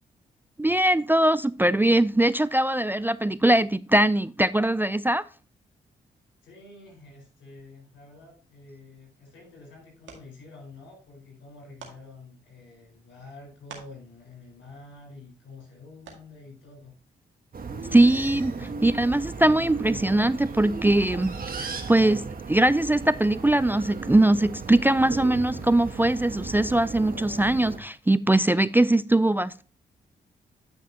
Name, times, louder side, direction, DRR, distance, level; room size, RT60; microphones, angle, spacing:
voice 1, 0.6-5.2 17.9-22.2 22.5-29.6, right 1 dB, 10° right, 0.4 m, -21 dB
voice 2, 6.4-16.9, left 3 dB, 85° left, 4.4 m, -48 dB
sound 1, 8.9-19.6, right 6 dB, 80° right, 2.0 m, -55 dB
sound 2, 17.5-27.8, right 4 dB, 50° right, 1.4 m, -36 dB
10.5 x 5.8 x 2.8 m
supercardioid pair, 45°, 19 cm